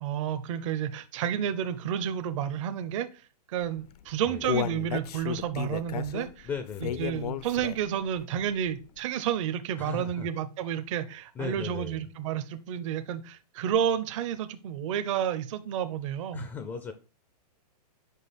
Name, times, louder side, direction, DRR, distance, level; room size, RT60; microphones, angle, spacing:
voice 1, 0.0-3.1 3.5-6.5 6.8-16.4, right 9 dB, 50° right, 11 dB, 0.6 m, -31 dB
Human voice, 3.8-8.0 8.4-8.5 9.0-9.1, left 9 dB, 70° left, 0.5 m, -33 dB
voice 2, 6.4-7.2 9.8-10.3 11.4-12.0 16.3-16.9, left 6 dB, 10° left, 8 dB, 0.4 m, -37 dB
5.5 x 5.2 x 4.0 m, 0.34 s
hypercardioid pair, 150°, 21 cm